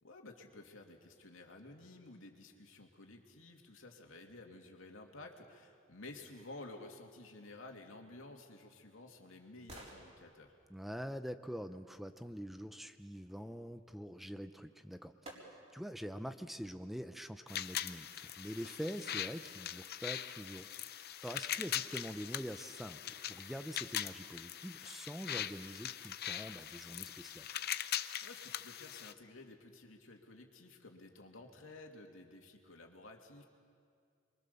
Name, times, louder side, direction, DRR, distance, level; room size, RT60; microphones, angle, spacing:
voice 1, 0.0-10.6 28.2-33.4, left 2 dB, 85° left, 2 dB, 2.7 m, -53 dB
sound 1, 8.4-12.2 14.3-14.4 15.2-15.9 16.4-16.5, right 1 dB, 35° right, 4.5 m, -57 dB
voice 2, 10.7-27.5, equal, ahead, 9 dB, 0.6 m, -45 dB
sound 2, 17.5-29.1, left 11 dB, 55° left, 0.7 m, -41 dB
28.5 x 23.5 x 7.0 m, 2.2 s
head